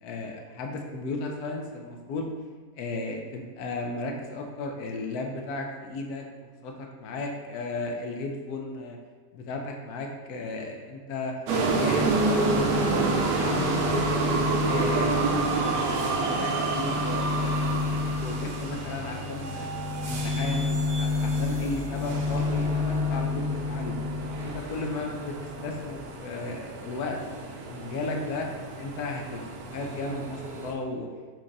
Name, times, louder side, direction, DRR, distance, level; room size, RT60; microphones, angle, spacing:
voice 1, 0.0-2.3 2.8-6.3 6.6-9.0 9.3-11.3 11.6-14.3 14.7-17.9 18.2-19.7 20.1-24.0 24.4-25.3 25.6-27.2 27.7-28.5 28.8-29.4 29.7-31.1, left 3 dB, 70° left, 2 dB, 1.0 m, -34 dB
sound 1, 11.5-30.7, right 3 dB, 70° right, 1.0 m, -30 dB
sound 2, 11.6-24.6 24.9-25.9, left 4 dB, 40° left, 1.6 m, -31 dB
5.9 x 2.9 x 2.5 m, 1.5 s
omnidirectional pair, 1.8 m